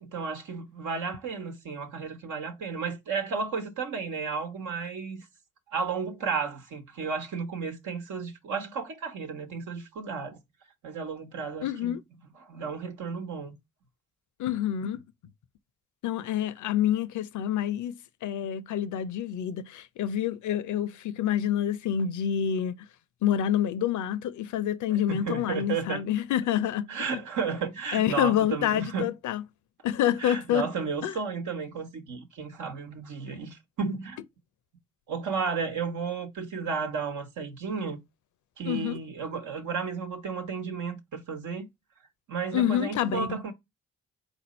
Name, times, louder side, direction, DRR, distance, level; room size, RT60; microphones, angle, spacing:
voice 1, 0.0-5.3 5.7-10.4 10.8-11.9 12.4-13.5 25.1-26.0 26.9-29.1 30.2-34.2 35.1-38.0 38.6-41.7 42.3-43.5, right 5 dB, 75° right, 1.1 m, -33 dB
voice 2, 11.6-12.0 14.4-15.0 16.0-22.7 23.2-27.2 27.9-29.4 29.8-30.7 31.0-31.1 38.6-39.0 42.5-43.4, left 10 dB, 70° left, 0.6 m, -27 dB
4.0 x 2.6 x 4.1 m
supercardioid pair, 45°, 31 cm